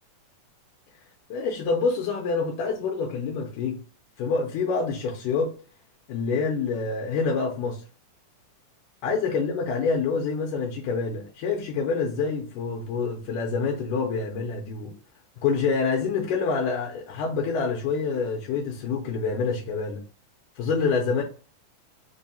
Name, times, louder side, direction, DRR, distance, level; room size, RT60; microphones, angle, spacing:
voice 1, 1.3-3.8 4.2-5.5 6.1-7.8 9.0-14.9 15.4-20.0 20.6-21.2, left 4 dB, 80° left, 2.1 m, -27 dB
5.3 x 2.0 x 2.6 m
omnidirectional pair, 3.7 m